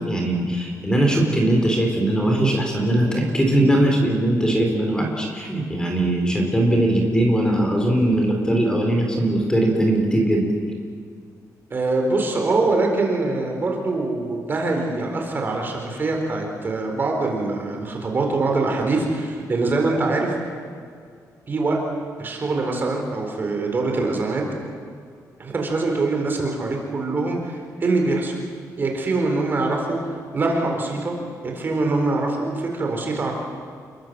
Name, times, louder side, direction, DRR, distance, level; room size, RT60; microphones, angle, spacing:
voice 1, 0.0-10.5, right 1 dB, 10° left, 1 dB, 4.3 m, -20 dB
voice 2, 11.7-20.3 21.5-21.8 22.2-24.4 25.4-28.3 28.8-30.0 30.3-31.1 31.4-33.3, right 3 dB, 30° right, 1 dB, 4.2 m, -23 dB
29.0 x 22.5 x 7.7 m, 2.1 s
wide cardioid pair, 165°, 7 cm